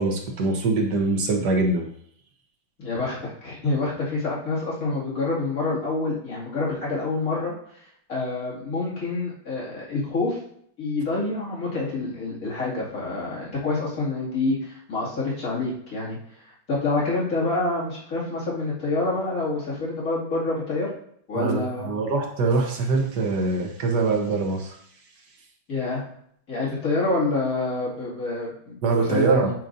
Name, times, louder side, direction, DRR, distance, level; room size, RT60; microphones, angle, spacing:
voice 1, 0.0-1.9 21.3-24.8 28.8-29.5, right 3 dB, 65° right, 2 dB, 1.5 m, -23 dB
voice 2, 2.8-7.8 8.1-10.4 10.8-20.9 21.3-21.9 25.7-26.0 26.5-29.5, left 3 dB, 45° left, -7 dB, 2.7 m, -27 dB
9.1 x 4.9 x 2.6 m, 0.68 s
omnidirectional pair, 2.1 m